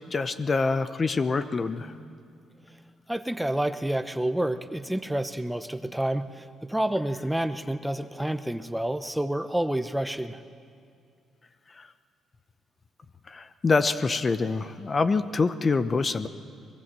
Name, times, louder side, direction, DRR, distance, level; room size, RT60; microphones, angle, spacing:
voice 1, 0.1-1.9 13.3-16.3, left 4 dB, 35° left, 12 dB, 0.8 m, -25 dB
voice 2, 3.1-10.4, right 1 dB, 5° right, 10 dB, 0.8 m, -29 dB
24.0 x 21.0 x 7.6 m, 2.3 s
cardioid pair, 90°, 0 cm